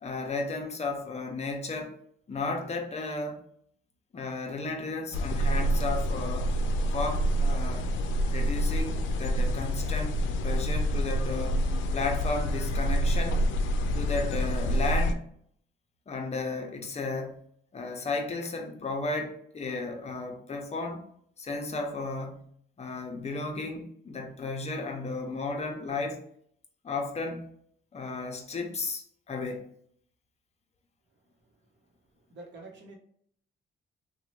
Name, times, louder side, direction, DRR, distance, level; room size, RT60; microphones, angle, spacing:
voice 1, 0.0-1.9 2.3-3.4 4.1-6.5 6.9-7.9 8.3-11.7 11.9-13.4 13.9-15.2 16.1-17.4 17.7-21.0 21.4-22.5 22.8-26.2 26.8-27.5 27.9-29.7, left 3 dB, 35° left, 0.6 m, -34 dB
sound 1, 5.1-15.1, equal, 75° left, 0.4 m, -27 dB
voice 2, 32.3-33.0, right 2 dB, 65° right, 0.9 m, -47 dB
3.0 x 2.2 x 3.0 m
cardioid pair, 90°, 20 cm